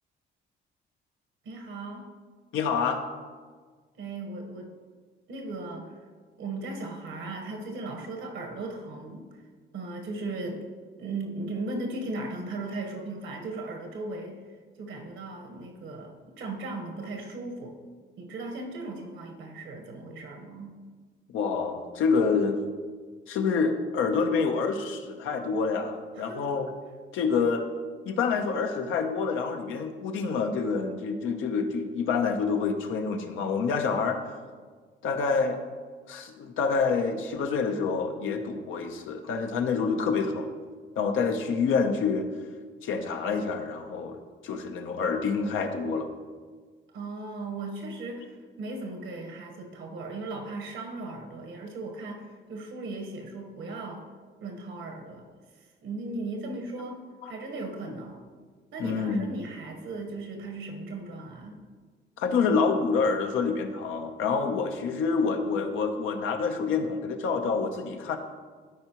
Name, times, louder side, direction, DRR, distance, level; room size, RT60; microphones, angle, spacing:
voice 1, 1.4-2.1 4.0-4.7 5.3-5.9 6.4-9.4 9.7-10.7 11.0-17.8 18.2-20.7 26.1-26.5 46.9-54.1 54.4-55.3 55.5-57.0 57.2-58.3 58.7-61.6, right 2 dB, 80° right, 3 dB, 1.3 m, -37 dB
voice 2, 2.5-3.0 21.3-22.6 23.3-26.7 27.1-27.7 28.0-34.3 35.0-35.6 36.1-40.5 41.0-42.3 42.8-46.1 57.2-57.3 58.8-59.3 62.2-68.2, left 5 dB, 85° left, 5 dB, 0.8 m, -27 dB
12.5 x 4.6 x 3.0 m, 1.5 s
cardioid pair, 90°, 20 cm